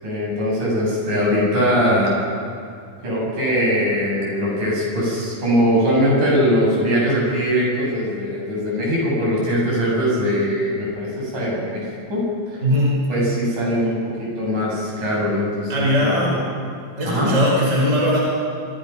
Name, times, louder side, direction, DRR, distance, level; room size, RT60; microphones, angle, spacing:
voice 1, 0.0-2.2 3.0-11.8 12.1-12.2 12.5-12.6 13.1-16.4 17.1-17.3, equal, 55° right, -4 dB, 9.5 m, -21 dB
voice 2, 12.6-13.1 15.7-16.5 17.0-18.2, equal, 20° right, -4 dB, 5.6 m, -19 dB
26.0 x 25.0 x 6.0 m, 2.2 s
omnidirectional pair, 4.2 m